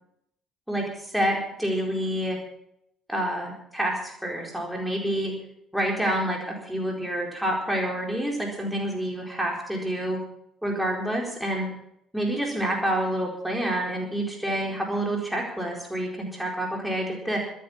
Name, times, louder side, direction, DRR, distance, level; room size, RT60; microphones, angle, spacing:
voice 1, 0.7-2.4 3.1-5.3 5.7-10.2 10.6-11.7 12.1-17.4, right 1 dB, 5° right, -2 dB, 4.4 m, -28 dB
25.0 x 8.5 x 5.9 m, 0.74 s
figure-of-eight pair, 50°, 0 cm